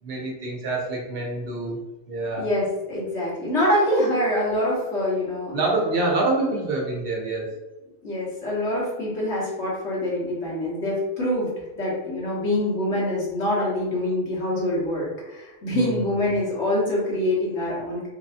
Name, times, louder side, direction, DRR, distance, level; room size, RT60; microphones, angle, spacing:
voice 1, 0.0-1.8 2.1-2.5 5.5-7.5 15.7-16.4, right 2 dB, 60° right, -1 dB, 0.9 m, -26 dB
voice 2, 2.4-5.5 8.0-11.5 11.8-18.1, left 1 dB, 80° left, -6 dB, 1.6 m, -25 dB
3.4 x 3.2 x 2.7 m, 1.1 s
omnidirectional pair, 1.2 m